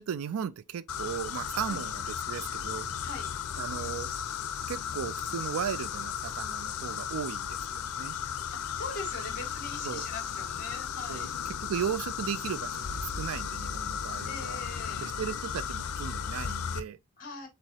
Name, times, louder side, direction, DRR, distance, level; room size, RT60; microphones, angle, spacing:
voice 1, 0.0-2.9 3.6-4.1 4.7-8.2 9.8-10.1 11.1-14.6 15.0-17.0, right 8 dB, 70° right, 0.4 m, -36 dB
sound 1, 0.9-16.8, left 8 dB, 80° left, 0.6 m, -35 dB
voice 2, 8.5-11.3 14.3-15.1 17.2-17.5, left 2 dB, 40° left, 2.4 m, -41 dB
4.6 x 4.0 x 2.8 m
head